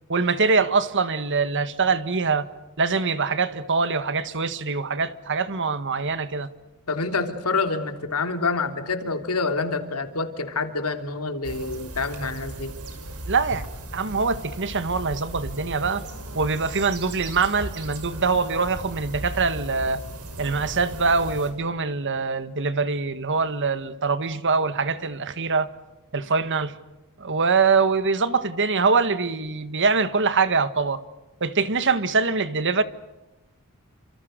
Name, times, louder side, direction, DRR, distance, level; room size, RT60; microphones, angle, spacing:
voice 1, 0.1-2.5 2.8-6.5 13.3-13.6 13.9-16.0 16.3-20.0 20.4-25.7 26.1-26.7 27.2-31.0 31.4-32.8, right 4 dB, 55° right, 1.7 m, -23 dB
voice 2, 6.9-12.7, left 4 dB, 85° left, 3.3 m, -27 dB
sound 1, 11.4-21.5, right 1 dB, 85° right, 5.9 m, -37 dB
29.5 x 26.5 x 6.7 m
head